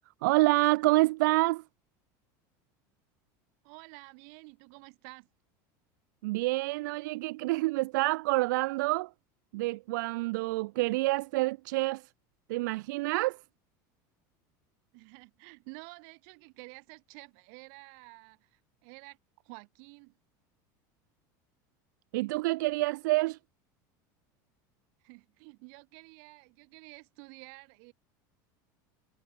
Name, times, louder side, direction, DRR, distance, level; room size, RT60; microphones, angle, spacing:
voice 1, 0.2-1.6 6.2-9.1 9.5-12.1 12.5-13.4 22.1-23.4, right 21 dB, 80° right, 0.4 m, -27 dB
voice 2, 3.6-5.3 14.9-19.2 19.4-20.2 25.0-27.9, right 40 dB or more, 55° right, 3.1 m, -50 dB
cardioid pair, 175°, 10 cm